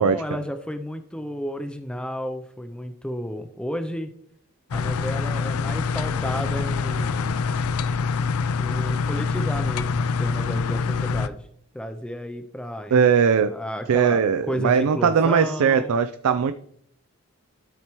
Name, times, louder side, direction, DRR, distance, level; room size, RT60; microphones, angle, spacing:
voice 1, 0.0-4.1 4.7-7.4 8.6-11.4 11.7-13.1 13.4-14.2 14.5-15.9, equal, 5° left, 7 dB, 0.4 m, -32 dB
sound 1, 4.7-11.3, left 5 dB, 80° left, 0.4 m, -25 dB
voice 2, 12.9-13.5 13.9-16.5, right 6 dB, 85° right, 10 dB, 0.4 m, -19 dB
13.0 x 4.4 x 3.0 m, 0.69 s
head